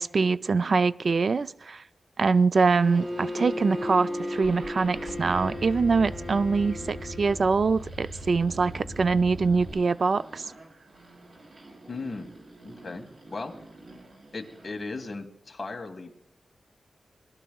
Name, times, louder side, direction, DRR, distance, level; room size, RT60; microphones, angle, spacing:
voice 1, 0.0-1.8 2.2-10.4, right 4 dB, 50° right, 14 dB, 0.4 m, -24 dB
sound 1, 2.6-14.8, right 2 dB, 70° right, 4.2 m, -45 dB
Bowed string instrument, 2.7-7.5, left 2 dB, 30° right, 2.7 m, -36 dB
Car / Engine starting, 4.3-9.7, equal, 90° right, 2.5 m, -41 dB
voice 2, 11.9-12.3 12.6-13.5 14.3-16.1, left 3 dB, 35° left, 3 dB, 1.9 m, -37 dB
22.0 x 12.0 x 2.3 m, 0.83 s
wide cardioid pair, 110°, 0 cm